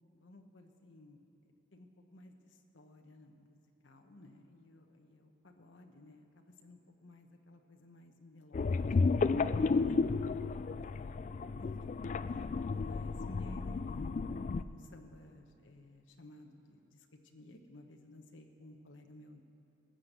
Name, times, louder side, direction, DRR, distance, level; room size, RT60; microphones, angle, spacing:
voice 1, 0.1-9.8 10.8-11.3 11.6-11.7 12.3-14.3 14.6-19.4, left 1 dB, 85° left, 4 dB, 1.0 m, -56 dB
sound 1, 8.5-14.6, left 4 dB, 40° left, 0.3 m, -32 dB
19.5 x 7.7 x 6.7 m, 2.7 s
head